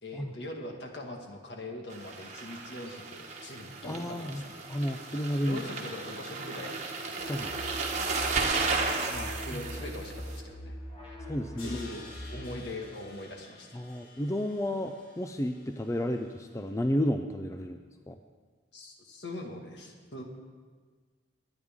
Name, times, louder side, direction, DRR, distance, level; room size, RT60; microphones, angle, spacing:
voice 1, 0.0-4.6 5.4-7.6 8.0-8.1 9.1-10.7 11.6-12.0 12.3-13.8 17.6-17.7 18.7-20.2, left 1 dB, 60° left, 2 dB, 1.7 m, -42 dB
sound 1, 1.9-10.4, right 3 dB, 35° right, 1.3 m, -34 dB
voice 2, 3.8-4.4 4.7-5.6 7.2-7.5 9.5-9.6 11.3-11.8 13.7-17.8 18.1-18.2, equal, 15° left, 6 dB, 0.4 m, -32 dB
sound 2, 7.2-12.4, equal, 30° left, 2.2 m, -42 dB
Crash cymbal, 11.6-16.6, left 2 dB, 90° left, 3.9 m, -52 dB
23.0 x 9.6 x 3.6 m, 1.5 s
head